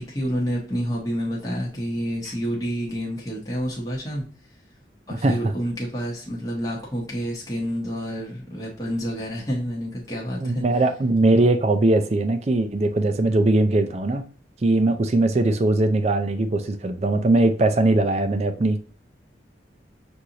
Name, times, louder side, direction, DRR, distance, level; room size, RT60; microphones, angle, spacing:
voice 1, 0.0-4.2 5.1-10.6, equal, 20° left, 0.9 m, -28 dB
voice 2, 10.4-14.2 14.6-18.8, right 2 dB, 35° right, 0.4 m, -20 dB
6.2 x 2.6 x 2.8 m
head